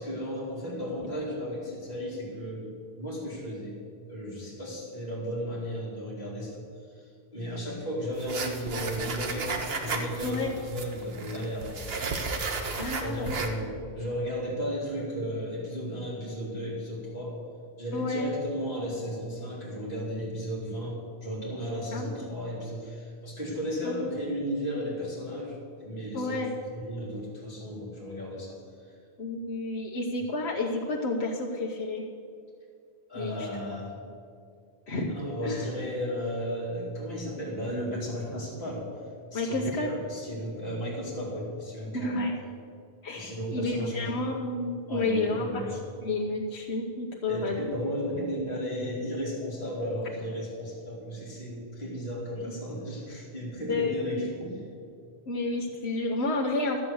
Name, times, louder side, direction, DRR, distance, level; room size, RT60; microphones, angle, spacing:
voice 1, 0.0-2.7 3.0-3.8 4.1-6.7 7.0-9.5 9.8-11.9 12.9-17.4 17.8-28.9 33.1-34.0 35.1-38.9 39.3-42.3 43.1-44.1 44.9-45.8 47.3-54.6, equal, 40° left, -7 dB, 2.5 m, -34 dB
sound 1, 8.1-13.5, right 4 dB, 70° right, 1.2 m, -34 dB
voice 2, 12.8-13.3 17.9-18.3 21.9-22.1 23.8-24.1 26.1-26.5 29.2-32.0 33.1-33.5 34.9-35.1 35.4-35.6 39.3-39.9 41.9-42.3 43.0-45.6 46.0-47.6 52.3-52.5 53.7-54.2 55.3-56.8, left 2 dB, 85° left, -2 dB, 1.3 m, -30 dB
12.5 x 7.9 x 7.0 m, 2.3 s
omnidirectional pair, 1.1 m